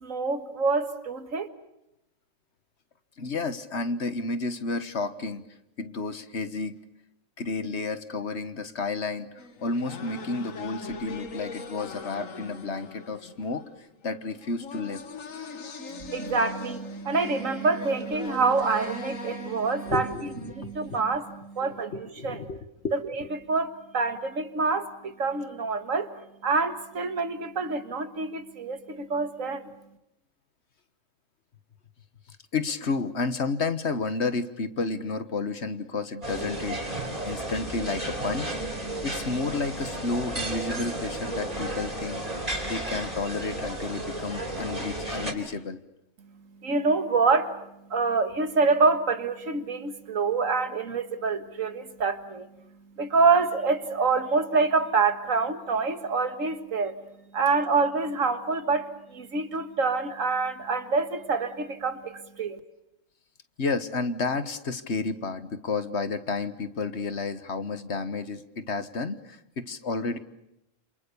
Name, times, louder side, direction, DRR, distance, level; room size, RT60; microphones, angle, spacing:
voice 1, 0.0-1.5 15.9-20.1 20.5-22.4 22.9-26.1 26.4-29.7 46.6-52.5 53.0-57.0 57.3-62.6, right 4 dB, 80° right, 9 dB, 2.0 m, -26 dB
voice 2, 3.2-5.4 5.8-6.8 7.4-13.6 14.0-15.0 19.9-21.0 21.6-23.3 32.5-38.6 39.0-42.2 42.7-45.8 63.6-70.2, left 3 dB, 60° left, 11 dB, 1.6 m, -31 dB
sound 1, 9.4-21.3, left 4 dB, 85° left, 1.9 m, -41 dB
sound 2, 36.2-45.3, right 1 dB, 30° right, 4.3 m, -33 dB
28.5 x 28.0 x 7.0 m, 0.85 s
omnidirectional pair, 1.3 m